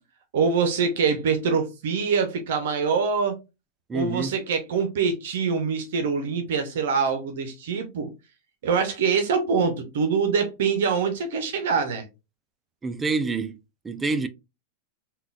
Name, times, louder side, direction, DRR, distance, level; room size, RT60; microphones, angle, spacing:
voice 1, 0.3-3.4 3.9-8.1 8.6-12.1, right 5 dB, 75° right, 0.6 m, -24 dB
voice 2, 3.9-4.3 12.8-13.6 13.8-14.3, right 4 dB, 15° right, 0.3 m, -27 dB
3.7 x 2.2 x 2.3 m
hypercardioid pair, 130°, 0 cm